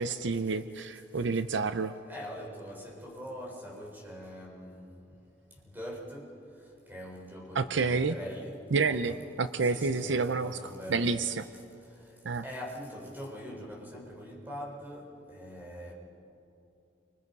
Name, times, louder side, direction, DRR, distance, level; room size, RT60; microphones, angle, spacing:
voice 1, 0.0-1.9 7.5-8.1 8.7-10.6 10.9-11.4 12.2-12.4, right 4 dB, 65° right, 11 dB, 0.6 m, -29 dB
voice 2, 2.0-4.9 5.6-6.3 6.9-9.3 9.6-11.2 12.4-15.9, equal, 10° right, -2 dB, 4.3 m, -43 dB
29.5 x 25.5 x 5.5 m, 2.8 s
head